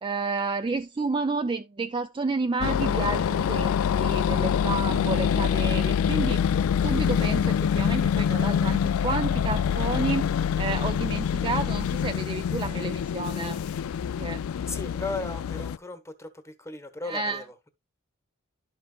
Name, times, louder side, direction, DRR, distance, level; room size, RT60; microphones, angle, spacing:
voice 1, 0.0-6.4 6.8-10.3 10.6-13.6 14.2-14.4 17.1-17.4, right 3 dB, 25° right, 0.4 m, -30 dB
sound 1, 2.6-15.8, left 8 dB, 80° left, 0.3 m, -25 dB
voice 2, 14.7-17.7, left 3 dB, 15° left, 1.1 m, -36 dB
11.5 x 5.4 x 2.3 m
head